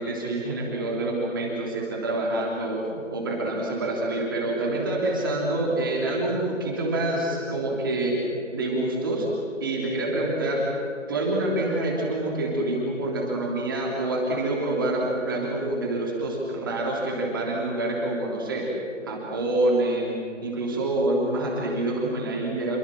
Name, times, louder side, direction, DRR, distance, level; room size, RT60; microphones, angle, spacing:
voice 1, 0.0-9.3 9.6-10.6 11.1-18.7 19.0-22.8, right 2 dB, 15° right, -3 dB, 3.2 m, -27 dB
30.0 x 24.0 x 7.5 m, 2.8 s
figure-of-eight pair, 165°, 38 cm